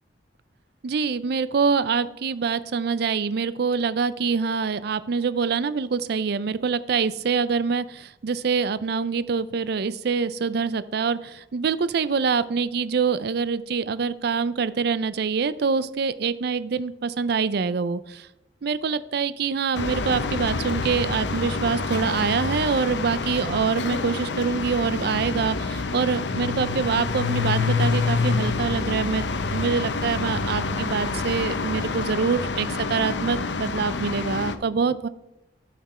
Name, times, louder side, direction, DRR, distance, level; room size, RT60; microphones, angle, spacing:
voice 1, 0.8-18.3 18.6-35.1, right 5 dB, 65° right, 16 dB, 0.4 m, -25 dB
sound 1, 19.7-34.6, left 4 dB, 85° left, 0.7 m, -27 dB
13.0 x 5.9 x 4.3 m, 0.92 s
head